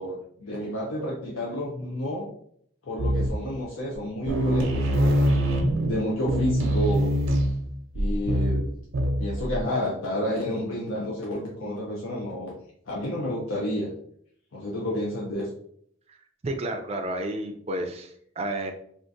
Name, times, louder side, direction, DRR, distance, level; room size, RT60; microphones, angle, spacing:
voice 1, 0.0-2.3 2.8-5.4 5.8-7.1 7.9-8.7 9.2-12.5 12.9-13.9 14.5-15.5, left 1 dB, 80° left, -4 dB, 0.6 m, -30 dB
sound 1, 3.0-3.6 3.9-4.0 4.3-9.6, equal, 90° right, 0.6 m, -24 dB
voice 2, 16.4-18.7, right 1 dB, 30° right, 4 dB, 0.4 m, -31 dB
3.6 x 2.4 x 2.6 m, 0.66 s
head